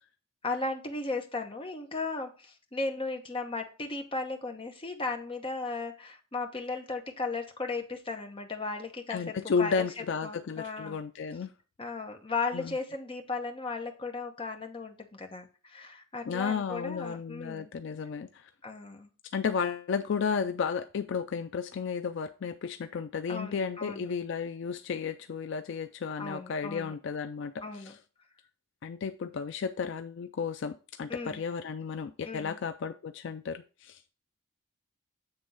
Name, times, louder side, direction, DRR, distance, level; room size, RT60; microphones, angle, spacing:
voice 1, 0.4-9.8 10.2-11.0 11.8-17.7 18.6-19.1 23.3-24.1 26.2-26.9 27.6-27.9 31.1-31.4 32.2-32.6, left 3 dB, 25° left, 3 dB, 0.9 m, -36 dB
voice 2, 9.1-11.5 12.5-12.7 16.3-18.5 19.3-28.0 28.8-34.0, left 6 dB, 60° left, 8 dB, 0.3 m, -33 dB
7.8 x 3.5 x 5.4 m, 0.35 s
head